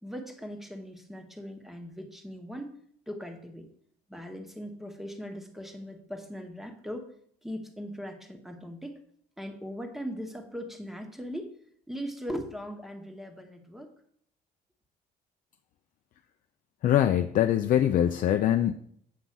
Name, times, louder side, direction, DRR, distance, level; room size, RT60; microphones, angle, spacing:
voice 1, 0.0-2.7 3.1-3.7 4.1-7.1 7.4-9.0 9.4-11.5 11.9-13.9, equal, ahead, 4 dB, 1.2 m, -39 dB
voice 2, 16.8-18.7, left 11 dB, 55° left, 7 dB, 0.4 m, -23 dB
8.4 x 3.9 x 5.9 m, 0.64 s
cardioid pair, 110°, 17 cm